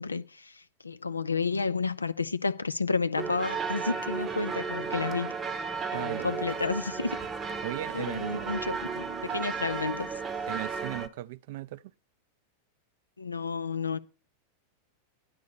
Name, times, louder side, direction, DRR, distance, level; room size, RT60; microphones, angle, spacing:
voice 1, 0.0-5.3 5.9-7.2 7.9-10.1 13.2-14.0, left 4 dB, 80° left, 0.5 m, -31 dB
sound 1, 3.2-11.1, right 5 dB, 20° right, 0.8 m, -34 dB
voice 2, 5.9-6.3 7.6-8.7 10.5-11.8, right 15 dB, 50° right, 0.3 m, -37 dB
10.5 x 4.1 x 6.8 m
figure-of-eight pair, 90°, 0 cm